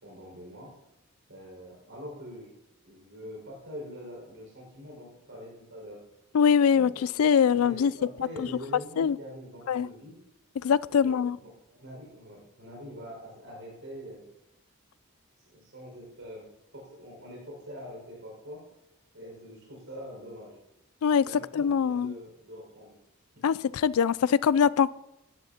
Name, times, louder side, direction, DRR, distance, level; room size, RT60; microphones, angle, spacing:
voice 1, 0.0-0.7 1.3-2.5 2.8-6.0 6.6-7.1 7.3-10.2 10.9-11.4 11.7-14.3 15.4-16.5 16.7-18.6 19.1-20.6 21.2-22.9, equal, 65° right, -3 dB, 5.5 m, -44 dB
voice 2, 6.3-7.9 8.4-8.5 9.0-9.2 9.7-9.9 10.6-11.4 21.0-21.2 21.5-22.1 23.4-24.9, left 7 dB, 80° left, 20 dB, 0.4 m, -23 dB
17.0 x 13.5 x 2.9 m, 0.91 s
head